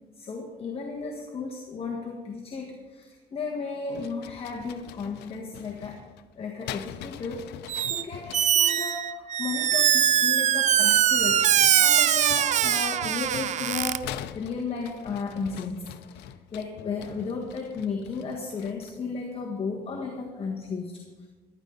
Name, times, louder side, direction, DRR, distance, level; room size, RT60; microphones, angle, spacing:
voice 1, 0.2-6.0 6.4-7.5 7.9-21.3, left 4 dB, 35° left, 0 dB, 1.6 m, -34 dB
sound 1, 3.9-8.8 10.5-19.1, left 11 dB, 85° left, 0.6 m, -44 dB
Squeak, 7.7-8.0 8.3-14.0, right 10 dB, 45° right, 0.5 m, -22 dB
14.5 x 12.0 x 4.0 m, 1.4 s
cardioid pair, 110°, 17 cm